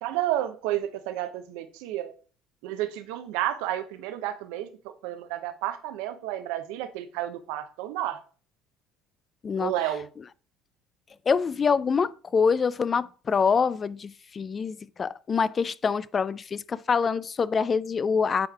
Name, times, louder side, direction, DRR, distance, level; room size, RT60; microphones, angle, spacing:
voice 1, 0.0-2.1 2.6-4.7 5.0-8.2 9.6-10.1, right 13 dB, 70° right, 0.6 m, -31 dB
voice 2, 11.3-18.5, left 5 dB, 35° left, 0.3 m, -25 dB
9.5 x 4.7 x 2.3 m
hypercardioid pair, 65°, 0 cm